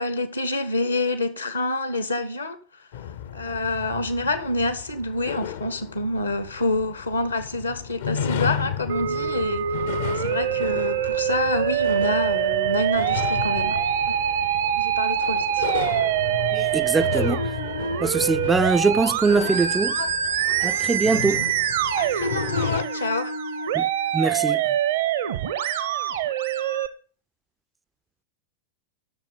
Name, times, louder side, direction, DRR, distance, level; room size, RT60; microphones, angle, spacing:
voice 1, 0.0-2.6 3.3-9.7 10.1-13.8 14.7-15.7 19.9-20.1 20.5-21.5 22.0-23.4, left 2 dB, 80° left, 0.9 m, -27 dB
sound 1, 2.9-22.8, left 9 dB, 55° left, 0.5 m, -33 dB
Musical instrument, 8.9-26.9, right 9 dB, 60° right, 0.7 m, -25 dB
voice 2, 16.5-17.5 18.0-20.0 20.6-21.5 23.7-23.9 24.1-24.6, right 4 dB, 10° right, 0.3 m, -23 dB
6.7 x 6.5 x 5.4 m
figure-of-eight pair, 90°, 0 cm